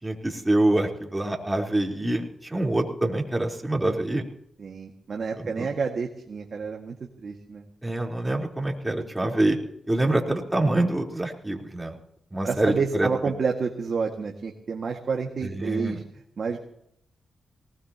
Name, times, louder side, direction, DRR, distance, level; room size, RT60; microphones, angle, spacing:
voice 1, 0.0-4.2 5.4-5.7 7.8-9.6 9.9-12.0 12.3-13.1 15.4-16.0, right 1 dB, 15° right, 0 dB, 3.9 m, -25 dB
voice 2, 4.6-7.7 12.4-16.0 16.4-16.7, right 5 dB, 60° right, 1 dB, 1.9 m, -29 dB
20.0 x 19.0 x 3.0 m, 0.73 s
supercardioid pair, 45°, 0 cm